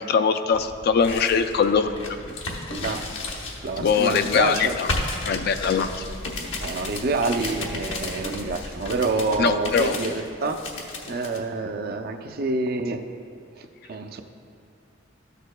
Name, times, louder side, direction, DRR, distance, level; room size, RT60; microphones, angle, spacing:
voice 1, 0.0-2.2 3.8-4.9 5.2-6.0 9.4-10.0, left 6 dB, 55° left, 9 dB, 0.3 m, -22 dB
sound 1, 0.5-11.4, left 2 dB, 75° left, 1.0 m, -34 dB
voice 2, 2.7-4.8 6.6-10.6 11.1-13.0 13.6-14.2, right 3 dB, 50° right, 7 dB, 0.5 m, -28 dB
13.0 x 6.7 x 2.2 m, 2.4 s
head